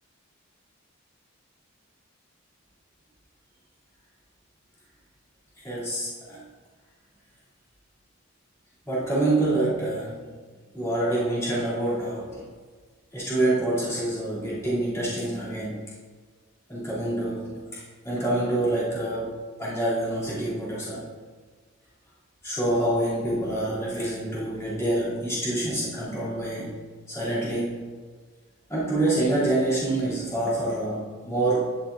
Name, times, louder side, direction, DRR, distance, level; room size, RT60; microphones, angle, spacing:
voice 1, 5.6-6.4 8.9-10.3 10.7-12.4 13.1-15.8 16.7-21.1 22.4-26.8 27.1-27.9 28.7-31.8, right 1 dB, 15° left, -11 dB, 2.4 m, -27 dB
11.5 x 6.5 x 2.4 m, 1.5 s
head